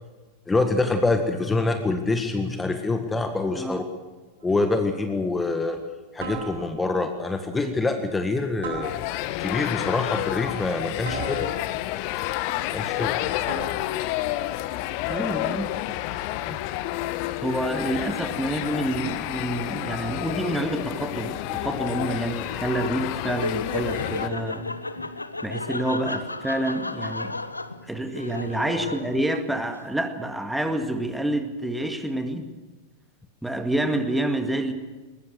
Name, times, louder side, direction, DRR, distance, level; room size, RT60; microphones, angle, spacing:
voice 1, 0.5-3.8 4.4-5.8 6.1-8.9 9.4-11.5 12.7-13.2 16.5-16.6, left 3 dB, 10° left, 6 dB, 1.7 m, -25 dB
sound 1, 4.4-4.7 6.2-7.0 8.6-9.5 11.0-12.0 13.5-14.1, right 3 dB, 65° right, 7.9 m, -36 dB
sound 2, 8.8-24.3, left 15 dB, 45° left, 1.1 m, -30 dB
voice 2, 15.1-15.7 17.4-24.7 25.4-27.4 27.9-32.5 33.4-34.7, right 1 dB, 5° right, 7 dB, 2.0 m, -28 dB
Laughter, 23.2-29.8, left 2 dB, 80° left, 0.9 m, -34 dB
21.0 x 21.0 x 6.5 m, 1.3 s
figure-of-eight pair, 90°, 0 cm